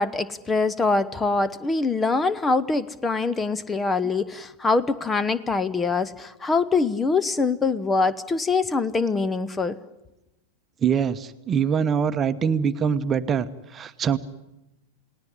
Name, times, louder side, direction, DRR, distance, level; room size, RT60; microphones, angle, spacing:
voice 1, 0.0-9.8, left 3 dB, 15° left, 16 dB, 1.0 m, -24 dB
voice 2, 10.8-13.5 13.7-14.2, right 7 dB, 25° right, 11 dB, 1.1 m, -23 dB
30.0 x 18.5 x 9.9 m, 0.97 s
figure-of-eight pair, 90°, 0 cm